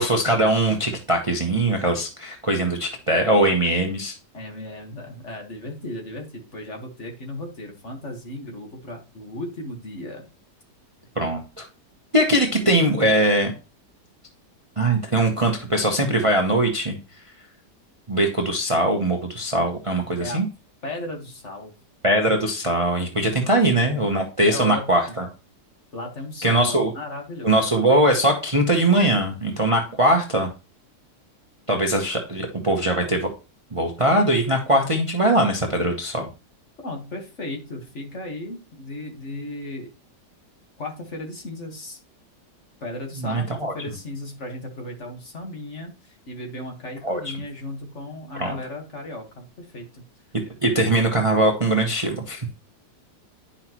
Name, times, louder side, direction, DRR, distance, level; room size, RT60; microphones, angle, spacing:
voice 1, 0.0-4.1 11.2-11.6 12.1-13.5 14.8-17.0 18.1-20.5 22.0-25.3 26.4-26.9 27.4-30.5 31.7-33.3 33.7-36.3 43.2-43.7 47.0-47.2 48.3-48.6 50.6-52.5, right 1 dB, 25° right, 3 dB, 0.9 m, -21 dB
voice 2, 4.3-10.3 12.5-12.7 20.2-20.4 20.8-21.7 23.4-23.9 24.4-25.2 25.9-27.7 36.8-39.9 40.8-42.0 42.8-50.0, left 1 dB, 45° left, 2 dB, 1.8 m, -35 dB
10.0 x 5.7 x 3.0 m, 0.31 s
omnidirectional pair, 1.8 m